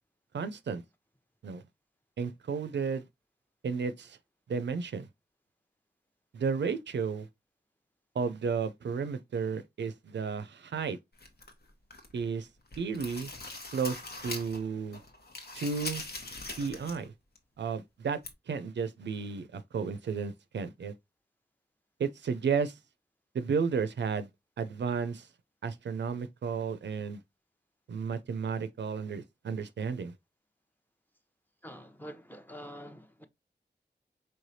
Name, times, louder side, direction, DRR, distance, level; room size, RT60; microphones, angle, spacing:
voice 1, 0.3-0.8 1.4-1.6 2.2-3.0 3.6-4.2 4.5-5.1 6.3-7.3 8.1-11.0 12.1-12.5 12.8-13.3 13.7-15.0 15.5-16.0 16.6-17.1 17.6-18.2 18.5-20.9 22.0-22.7 23.3-24.3 24.6-25.3 25.6-27.2 27.9-30.1, right 5 dB, 80° right, 0.4 m, -33 dB
sound 1, 11.2-12.2 12.6-14.6 14.9-17.1 17.3-17.4 18.2-18.3, left 2 dB, 60° left, 1.0 m, -42 dB
voice 2, 31.6-33.3, equal, 10° left, 0.7 m, -46 dB
4.4 x 3.2 x 2.7 m
cardioid pair, 45°, 18 cm